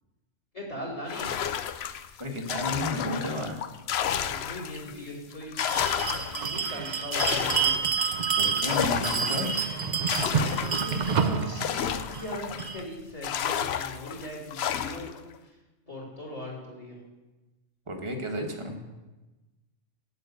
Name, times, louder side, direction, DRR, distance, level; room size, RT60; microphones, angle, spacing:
voice 1, 0.5-1.4 4.2-5.5 5.9-7.8 10.2-15.1 15.4-15.6 15.9-17.0, equal, 25° left, -3 dB, 3.7 m, -39 dB
sound 1, 1.1-4.9 5.3-12.8 13.2-15.2, left 9 dB, 65° left, 0.8 m, -32 dB
voice 2, 2.2-3.6 4.9-5.0 8.4-9.5 17.9-18.8, left 1 dB, 25° right, 2 dB, 1.4 m, -32 dB
Bell, 5.6-12.8, right 6 dB, 45° right, 0.7 m, -28 dB
8.2 x 8.1 x 8.1 m, 1.1 s
omnidirectional pair, 1.3 m